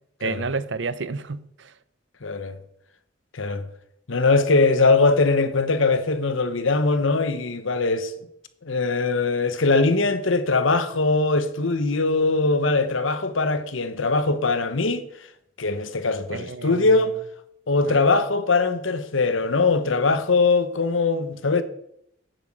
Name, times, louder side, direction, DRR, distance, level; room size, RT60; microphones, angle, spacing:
voice 1, 0.2-1.7 16.3-17.1 17.8-18.1, right 4 dB, 65° right, 0.7 m, -31 dB
voice 2, 2.2-2.6 3.3-3.7 4.1-8.1 8.6-15.1 15.6-17.1 17.7-21.6, left 3 dB, 80° left, 1.1 m, -21 dB
9.6 x 8.2 x 7.6 m
head